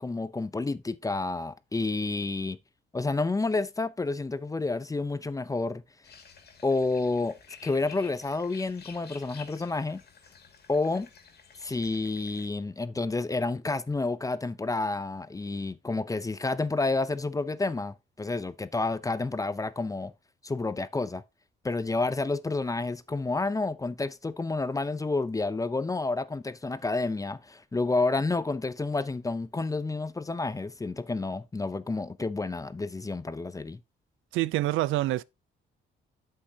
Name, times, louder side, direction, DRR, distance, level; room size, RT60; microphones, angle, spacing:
voice 1, 0.0-2.6 2.9-5.8 6.6-10.0 10.7-11.1 11.6-20.1 20.4-21.2 21.6-33.8, left 3 dB, 15° left, 0.6 m, -30 dB
sound 1, 6.0-12.5, left 6 dB, 55° left, 2.2 m, -51 dB
voice 2, 34.3-35.2, right 16 dB, 85° right, 0.4 m, -26 dB
8.5 x 7.6 x 2.8 m
cardioid pair, 90°, 20 cm